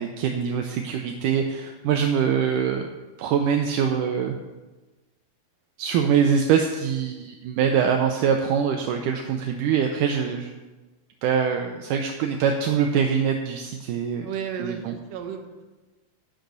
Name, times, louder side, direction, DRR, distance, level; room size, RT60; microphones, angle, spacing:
voice 1, 0.0-2.9 3.2-4.4 5.8-10.5 11.2-14.3 14.6-14.9, right 7 dB, 80° right, 4 dB, 1.9 m, -23 dB
voice 2, 14.2-15.6, right 7 dB, 65° right, 3 dB, 1.7 m, -33 dB
10.5 x 10.0 x 4.0 m, 1.2 s
omnidirectional pair, 4.3 m